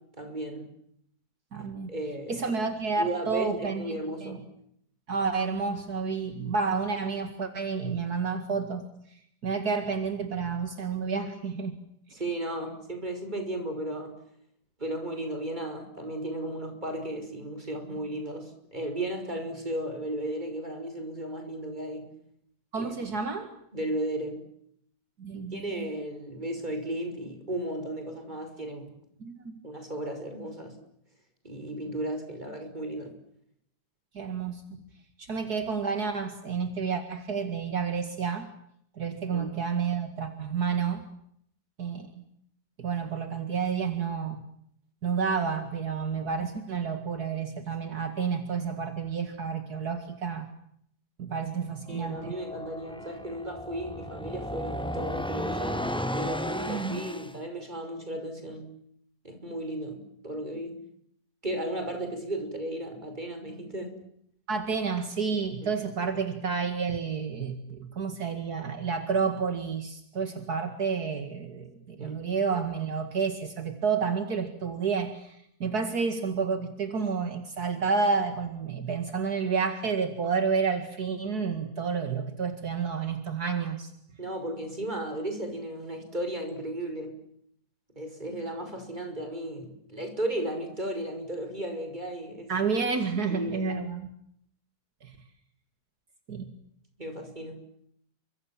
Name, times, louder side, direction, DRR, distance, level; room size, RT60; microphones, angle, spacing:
voice 1, 0.2-0.7 1.6-2.5 3.0-4.4 12.1-14.2 14.8-22.1 22.8-23.0 23.7-24.4 25.5-28.9 29.6-30.8 31.4-33.1 39.3-39.5 51.9-55.8 56.1-58.7 59.2-60.8 61.4-63.9 65.6-65.7 72.0-72.2 84.2-87.1 87.9-92.5 93.3-93.7 97.0-97.6, right 1 dB, 25° right, 6 dB, 6.2 m, -35 dB
voice 2, 1.5-1.9 2.3-4.4 5.1-8.8 9.4-11.7 22.7-23.5 25.2-25.9 29.2-29.6 34.1-34.8 35.2-38.5 39.0-41.0 41.8-42.1 42.8-44.4 45.0-50.5 51.2-52.3 56.7-57.0 64.5-83.9 92.5-94.1 95.0-95.1 96.3-96.5, right 5 dB, 70° right, 7 dB, 2.6 m, -30 dB
sound 1, 51.9-57.4, equal, 5° left, 1.2 m, -34 dB
30.0 x 25.0 x 7.6 m, 0.71 s
omnidirectional pair, 1.7 m